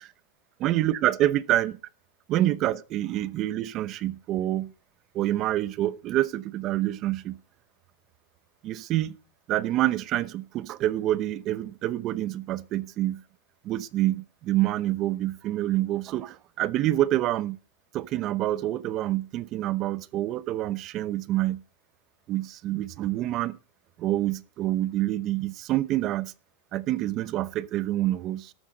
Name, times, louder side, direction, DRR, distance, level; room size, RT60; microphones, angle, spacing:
voice 1, 0.6-1.7 2.3-4.7 5.1-7.4 8.6-9.2 9.5-13.2 13.6-17.6 17.9-21.6 22.3-23.6 24.0-26.3 26.7-28.5, right 14 dB, 35° right, 0.8 m, -27 dB
13.5 x 12.0 x 5.1 m
supercardioid pair, 160°, 0 cm